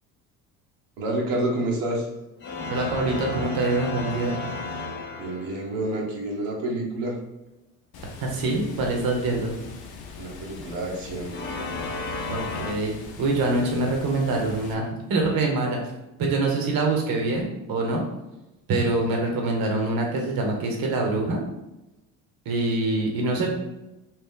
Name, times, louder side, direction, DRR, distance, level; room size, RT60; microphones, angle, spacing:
voice 1, 1.0-2.1 5.2-7.2 10.2-11.6, right 1 dB, 75° right, -3 dB, 1.0 m, -29 dB
sound 1, 2.4-5.8 11.3-12.7, left 3 dB, 25° left, 0.7 m, -33 dB
voice 2, 2.7-4.4 8.2-9.5 12.3-15.8 16.2-18.0 18.7-21.4 22.4-23.5, right 2 dB, 55° right, 1 dB, 1.0 m, -25 dB
Water, 7.9-14.7, left 5 dB, 60° left, 0.7 m, -42 dB
2.9 x 2.8 x 3.7 m, 0.94 s
supercardioid pair, 70°, 42 cm